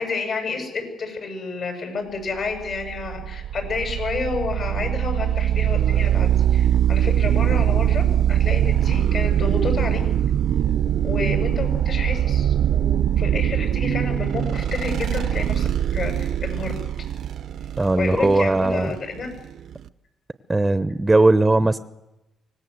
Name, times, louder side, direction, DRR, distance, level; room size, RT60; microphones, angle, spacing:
voice 1, 0.0-8.0 8.3-10.0 11.0-16.7 18.0-19.3, left 4 dB, 55° left, 5 dB, 7.3 m, -30 dB
sound 1, 2.5-19.9, right 10 dB, 70° right, 0.8 m, -22 dB
voice 2, 17.8-18.9 20.5-21.8, right 2 dB, 15° right, 13 dB, 0.9 m, -18 dB
24.5 x 19.5 x 8.0 m, 0.99 s
cardioid pair, 90°, 0 cm